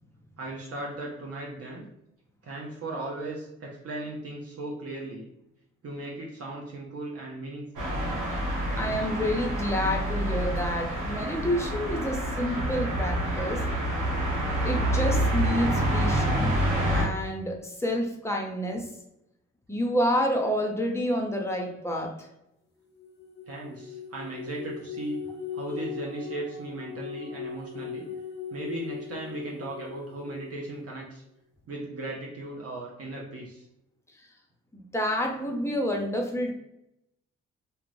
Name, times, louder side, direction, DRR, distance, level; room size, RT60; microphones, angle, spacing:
voice 1, 0.4-1.9 2.4-5.3 5.8-7.9 23.5-25.2 25.5-28.1 28.5-31.2 31.7-33.6, right 2 dB, 45° right, -2 dB, 0.7 m, -37 dB
sound 1, 7.8-17.1, right 1 dB, 70° right, 0.9 m, -27 dB
voice 2, 8.7-13.6 14.6-18.9 19.7-22.3 34.7-36.5, equal, 10° left, 1 dB, 0.8 m, -29 dB
sound 2, 22.9-30.7, left 7 dB, 35° left, 0.9 m, -39 dB
2.4 x 2.2 x 3.2 m, 0.83 s
hypercardioid pair, 50°, 32 cm